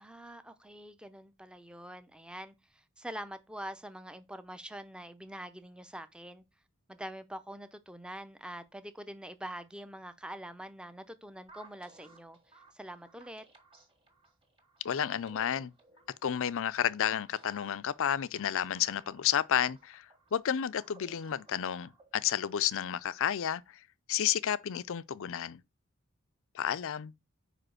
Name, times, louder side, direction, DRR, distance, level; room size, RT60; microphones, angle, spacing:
voice 1, 0.0-6.4 6.9-12.4 12.7-13.4, right 1 dB, 5° right, 0.6 m, -45 dB
sound 1, 11.5-22.5, right 3 dB, 25° right, 1.8 m, -59 dB
voice 2, 14.8-15.7 16.2-20.1 20.3-23.6 24.1-25.6 26.5-27.1, left 9 dB, 65° left, 0.5 m, -31 dB
5.1 x 5.0 x 6.2 m
head